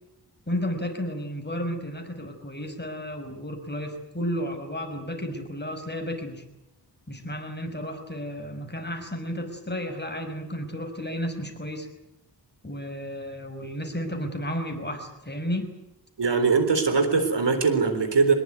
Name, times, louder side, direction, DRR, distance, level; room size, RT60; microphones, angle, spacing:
voice 1, 0.5-6.4 7.1-11.9 12.6-15.7, equal, 25° left, 5 dB, 5.6 m, -32 dB
voice 2, 16.2-18.3, right 4 dB, 90° right, 9 dB, 3.9 m, -21 dB
24.5 x 21.0 x 9.7 m, 0.88 s
wide cardioid pair, 70°, 41 cm